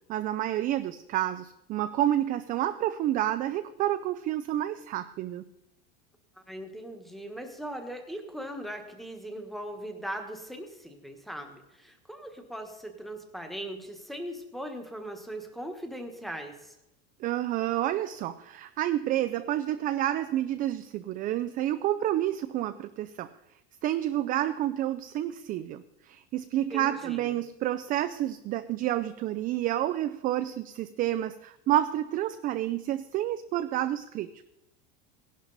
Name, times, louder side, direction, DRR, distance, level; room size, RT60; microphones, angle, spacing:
voice 1, 0.1-5.4 17.2-23.3 23.8-34.4, right 13 dB, 30° right, 11 dB, 0.4 m, -29 dB
voice 2, 6.5-16.7 26.7-27.4, right 1 dB, ahead, 4 dB, 1.4 m, -39 dB
17.0 x 11.5 x 4.0 m, 0.90 s
supercardioid pair, 155°, 29 cm